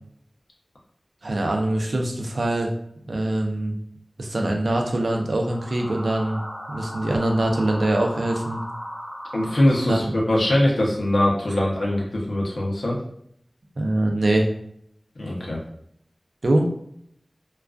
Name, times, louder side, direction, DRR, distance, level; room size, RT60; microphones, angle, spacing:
voice 1, 1.2-2.7 3.0-3.8 4.2-6.4 6.7-8.6 9.9-10.0 13.8-14.5 16.4-16.7, right 1 dB, 75° right, 2 dB, 0.4 m, -23 dB
sound 1, 5.3-10.3, equal, 50° left, 0.8 m, -37 dB
voice 2, 9.3-13.0 15.2-15.6, left 1 dB, 85° left, -3 dB, 0.6 m, -22 dB
2.4 x 2.2 x 2.3 m, 0.70 s
wide cardioid pair, 60°, 0 cm